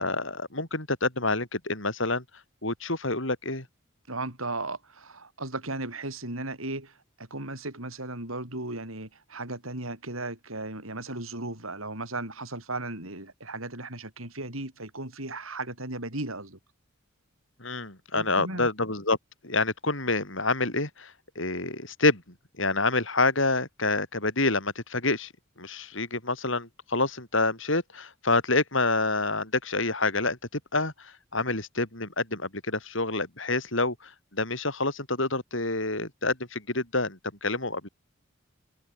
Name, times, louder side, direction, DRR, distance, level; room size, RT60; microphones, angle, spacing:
voice 1, 0.0-2.2 2.6-3.6 17.6-19.2 19.4-22.2 22.6-25.3 25.6-37.9, left 3 dB, 65° left, 6.3 m, -27 dB
voice 2, 4.1-16.6 18.1-18.7, right 2 dB, 80° right, 7.9 m, -36 dB
head